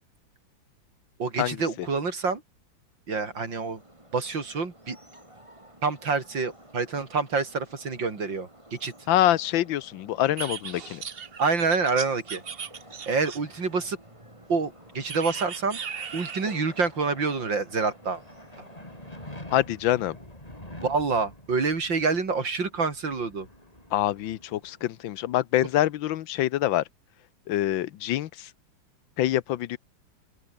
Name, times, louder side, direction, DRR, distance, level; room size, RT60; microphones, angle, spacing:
voice 1, 1.2-2.4 3.1-3.8 4.1-5.0 5.8-8.9 11.4-12.4 13.1-14.0 14.5-15.8 16.1-18.2 20.8-23.5, right 4 dB, 70° right, 4.2 m, -27 dB
sound 1, 3.1-19.4, right 1 dB, 15° right, 5.6 m, -52 dB
voice 2, 9.1-11.0 19.5-20.2 23.9-26.8 27.5-28.5 29.2-29.8, left 13 dB, 80° left, 1.5 m, -25 dB
sound 2, 10.4-13.6 15.1-16.6, right 7 dB, 40° right, 0.9 m, -37 dB
sound 3, 14.2-25.4, left 1 dB, 20° left, 5.6 m, -48 dB
open air
omnidirectional pair, 2.1 m